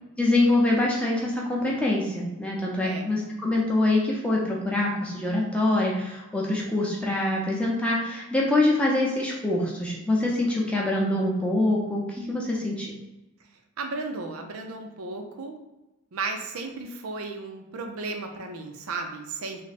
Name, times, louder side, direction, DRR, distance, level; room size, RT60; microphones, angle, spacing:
voice 1, 0.2-12.9, left 2 dB, 5° left, -4 dB, 0.6 m, -25 dB
voice 2, 13.8-15.6 16.1-19.6, right 3 dB, 75° right, 4 dB, 0.5 m, -34 dB
3.3 x 2.1 x 4.1 m, 0.99 s
head